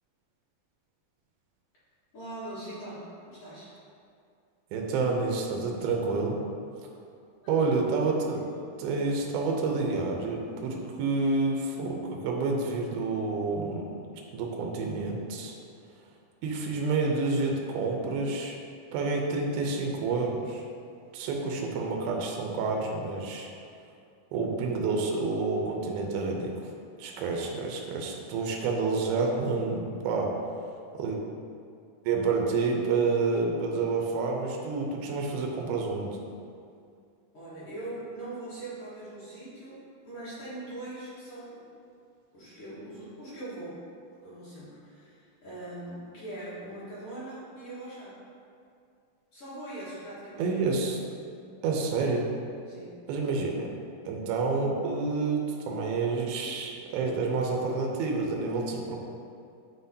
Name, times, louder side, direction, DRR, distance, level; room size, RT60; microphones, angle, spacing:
voice 1, 2.1-3.7 7.4-7.9 8.4-8.5 22.0-22.2 37.3-39.8 40.0-41.9 42.3-43.8 44.2-48.2 49.3-50.5 52.7-53.0, right 1 dB, 50° left, -11 dB, 1.9 m, -41 dB
voice 2, 4.7-6.4 7.5-8.5 8.8-14.0 14.3-15.5 16.4-18.6 18.9-20.7 21.1-23.5 24.3-26.5 27.0-30.3 31.0-31.2 32.0-36.2 50.4-51.0 51.6-52.3 53.1-53.7 54.1-59.0, right 3 dB, 80° right, 0 dB, 2.6 m, -29 dB
9.2 x 4.0 x 2.7 m, 2.4 s
omnidirectional pair, 4.5 m